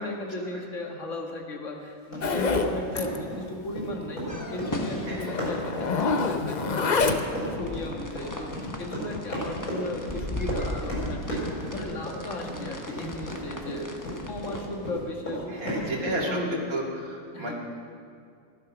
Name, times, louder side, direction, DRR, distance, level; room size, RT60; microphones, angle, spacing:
voice 1, 0.0-14.0 14.3-16.6 17.3-17.5, left 2 dB, 60° left, 1 dB, 2.1 m, -36 dB
Run, 2.1-14.5 14.8-16.2, equal, 85° left, 5.4 m, -34 dB
Zipper (clothing), 2.2-2.7 3.0-3.2 3.5-3.6 3.9-4.0 4.8-4.9 5.2-7.5, left 4 dB, 40° left, 0.7 m, -26 dB
sound 1, 4.3-14.9, left 1 dB, 15° left, 1.1 m, -38 dB
voice 2, 15.5-17.5, right 1 dB, 75° right, -2 dB, 2.7 m, -32 dB
15.0 x 12.0 x 6.0 m, 2.3 s
omnidirectional pair, 1.5 m